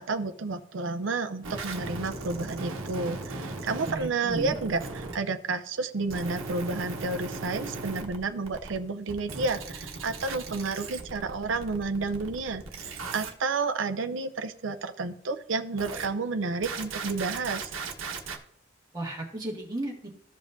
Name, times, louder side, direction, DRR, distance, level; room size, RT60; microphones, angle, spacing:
voice 1, 0.0-4.8 5.1-17.7, right 3 dB, 70° right, 8 dB, 0.5 m, -31 dB
sound 1, 1.4-5.1 6.1-8.8 9.1-13.3 15.8-16.1 16.6-18.4, right 3 dB, 85° right, 1.1 m, -37 dB
voice 2, 3.8-4.6 18.9-20.1, right 1 dB, 20° right, -2 dB, 1.8 m, -35 dB
14.0 x 5.3 x 2.6 m, 0.72 s
head